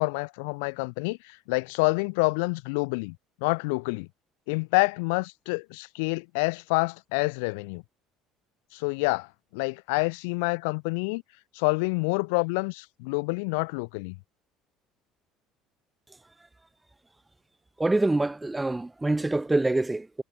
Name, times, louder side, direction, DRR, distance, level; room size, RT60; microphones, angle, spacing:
voice 1, 0.0-3.2 3.4-4.1 4.5-7.8 8.7-11.2 11.5-14.2, left 31 dB, 85° left, 2.2 m, -27 dB
voice 2, 17.8-20.2, right 2 dB, 10° right, 1.6 m, -25 dB
supercardioid pair, 90°, 0 cm